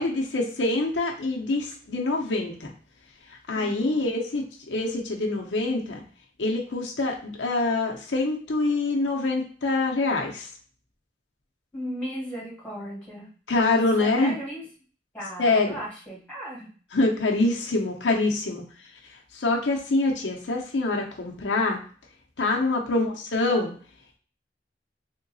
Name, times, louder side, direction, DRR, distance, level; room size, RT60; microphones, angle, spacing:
voice 1, 0.0-2.7 3.5-6.0 6.4-10.5 13.5-14.3 15.4-15.8 16.9-18.6 19.3-21.8 22.4-23.7, left 2 dB, 90° left, 1 dB, 0.8 m, -25 dB
voice 2, 3.5-4.1 11.7-13.3 14.0-14.7 15.1-16.7 22.9-23.2, equal, 10° left, -6 dB, 1.7 m, -36 dB
3.7 x 2.8 x 2.7 m, 0.42 s
head